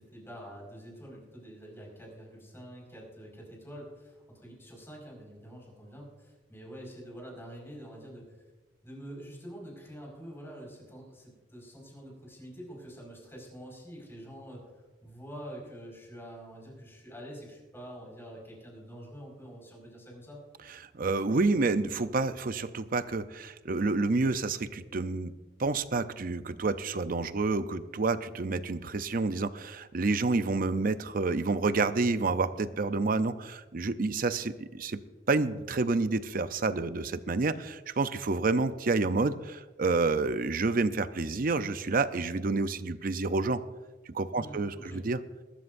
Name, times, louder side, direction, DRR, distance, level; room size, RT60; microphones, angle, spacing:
voice 1, 0.0-8.3 8.8-14.6 15.0-20.4 44.3-45.0, equal, 15° left, -1 dB, 5.1 m, -46 dB
voice 2, 20.9-25.3 25.6-35.0 35.3-43.6 44.1-45.2, right 3 dB, 55° right, 12 dB, 0.6 m, -29 dB
21.5 x 13.0 x 2.6 m, 1.2 s
head